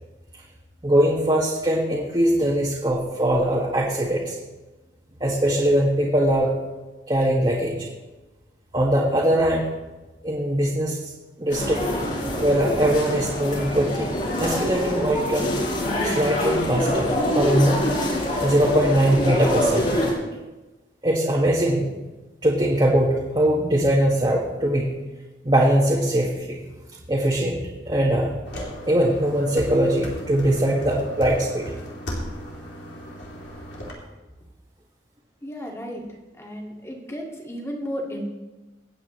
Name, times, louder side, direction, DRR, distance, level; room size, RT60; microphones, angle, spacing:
voice 1, 0.8-4.4 5.2-6.5 7.1-7.7 8.7-9.7 10.2-11.0 11.4-11.8 12.4-14.1 14.4-15.5 16.0-17.8 18.3-20.1 21.0-21.9 22.4-24.9 25.4-26.6 27.1-27.6 27.8-28.3 28.9-31.6, right 1 dB, 25° right, -5 dB, 1.6 m, -21 dB
sound 1, 11.5-20.1, left 1 dB, 45° left, 4.1 m, -25 dB
sound 2, 28.5-33.9, equal, 75° left, 3.0 m, -36 dB
voice 2, 35.4-36.0 36.4-38.3, equal, 15° left, -1 dB, 2.0 m, -33 dB
25.5 x 8.6 x 3.2 m, 1.1 s
head